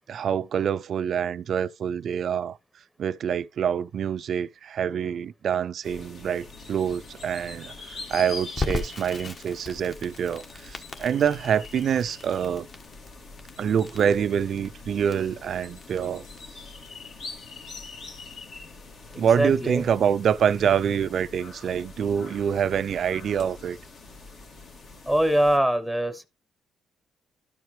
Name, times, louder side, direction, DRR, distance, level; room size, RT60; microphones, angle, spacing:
voice 1, 0.1-2.6 3.0-12.7 13.6-16.2 19.2-23.8, right 8 dB, 60° right, 0.4 m, -26 dB
sound 1, 5.8-25.6, left 3 dB, 60° left, 2.1 m, -44 dB
Crackle, 8.6-19.3, left 3 dB, 40° left, 1.2 m, -38 dB
voice 2, 19.1-19.8 25.1-26.3, right 1 dB, 5° left, 0.9 m, -23 dB
12.5 x 4.7 x 3.1 m
cardioid pair, 90°, 0 cm